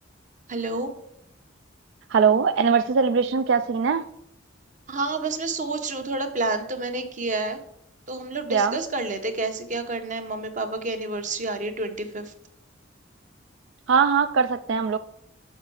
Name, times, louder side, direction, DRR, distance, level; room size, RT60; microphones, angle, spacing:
voice 1, 0.5-0.9 4.9-7.6 8.1-12.3, right 3 dB, 40° right, 7 dB, 0.9 m, -29 dB
voice 2, 2.1-4.0 8.5-8.8 13.9-15.0, right 6 dB, 65° right, 10 dB, 0.4 m, -21 dB
6.6 x 5.5 x 6.2 m, 0.76 s
head